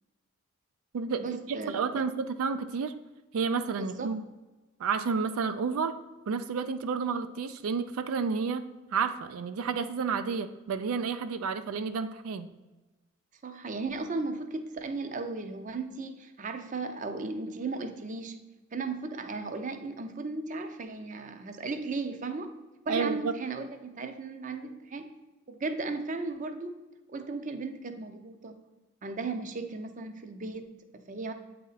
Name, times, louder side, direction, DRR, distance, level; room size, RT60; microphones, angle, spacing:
voice 1, 1.2-2.1 3.7-4.1 13.4-18.4 18.7-22.5 22.9-25.1 25.5-26.7 27.1-28.5 29.0-31.3, right 3 dB, 35° right, 7 dB, 0.5 m, -36 dB
voice 2, 1.7-2.9 3.3-4.2 4.8-6.0 6.3-8.6 8.9-12.5 22.9-23.3, right 5 dB, 85° right, 10 dB, 0.4 m, -30 dB
8.4 x 4.2 x 4.0 m, 1.1 s
head